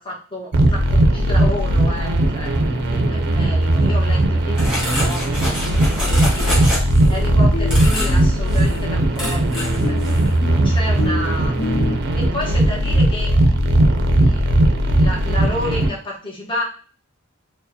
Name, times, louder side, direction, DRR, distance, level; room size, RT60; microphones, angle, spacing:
voice 1, 0.0-6.8 7.1-11.5 12.2-13.3 14.1-16.6, left 1 dB, 20° left, -3 dB, 1.1 m, -31 dB
sound 1, 0.5-15.9, right 1 dB, 50° right, 0.5 m, -18 dB
sound 2, 4.5-7.2 7.7-8.2 8.5-8.8 9.1-9.8 10.0-10.3, equal, 5° right, 1.4 m, -26 dB
sound 3, 6.0-6.1 6.4-7.0 7.2-12.0, left 3 dB, 65° left, 0.6 m, -30 dB
4.5 x 2.2 x 2.7 m, 0.40 s
head